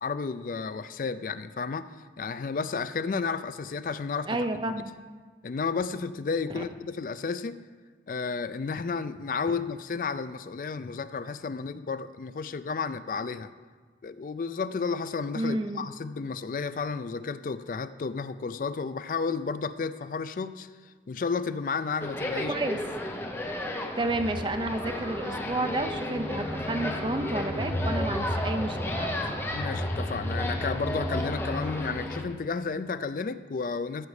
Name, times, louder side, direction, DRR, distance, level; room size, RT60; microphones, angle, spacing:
voice 1, 0.0-1.9 2.2-4.4 5.4-7.6 8.1-13.5 14.0-22.5 29.5-34.1, left 5 dB, 50° left, 13 dB, 0.3 m, -32 dB
voice 2, 4.3-4.9 6.5-6.6 15.3-15.9 22.5-22.8 23.7-29.2, right 2 dB, 25° right, 7 dB, 0.5 m, -31 dB
sound 1, 22.0-32.2, left 1 dB, 15° left, 0.7 m, -34 dB
sound 2, 24.1-32.1, equal, 60° right, 2.1 m, -34 dB
14.5 x 5.2 x 4.9 m, 1.5 s
head